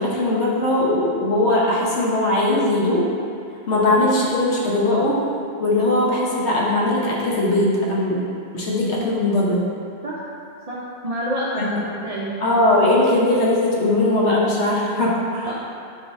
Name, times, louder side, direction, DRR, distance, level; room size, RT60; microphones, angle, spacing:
voice 1, 0.0-3.1 3.7-5.2 5.6-8.2 8.5-9.7 11.5-11.7 12.4-15.6, left 1 dB, 90° left, -5 dB, 1.1 m, -20 dB
voice 2, 10.7-12.3 15.4-15.6, equal, 60° right, -6 dB, 0.4 m, -28 dB
6.1 x 2.6 x 3.1 m, 2.5 s
omnidirectional pair, 1.1 m